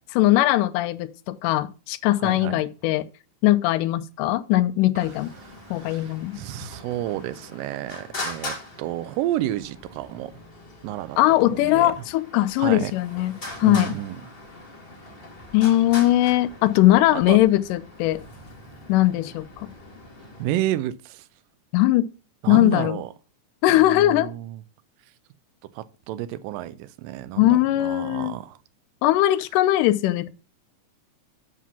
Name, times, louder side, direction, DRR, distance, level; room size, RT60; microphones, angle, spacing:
voice 1, 0.1-3.1 3.4-5.3 5.7-6.4 11.2-13.3 13.6-13.9 15.5-18.2 18.9-19.7 21.7-22.1 22.5-23.0 23.6-24.3 27.4-28.4 29.0-30.3, left 15 dB, 80° left, 2.1 m, -20 dB
voice 2, 2.2-2.6 5.0-5.1 5.5-10.4 10.8-11.2 11.5-11.9 12.6-12.9 13.6-14.2 17.1-17.4 20.4-21.3 22.4-23.1 23.7-24.6 25.6-28.6, right 14 dB, 85° right, 2.2 m, -31 dB
Traffic noise roadway noise, 5.0-20.5, left 2 dB, 30° left, 1.1 m, -41 dB
7.4 x 5.7 x 5.7 m
omnidirectional pair, 4.0 m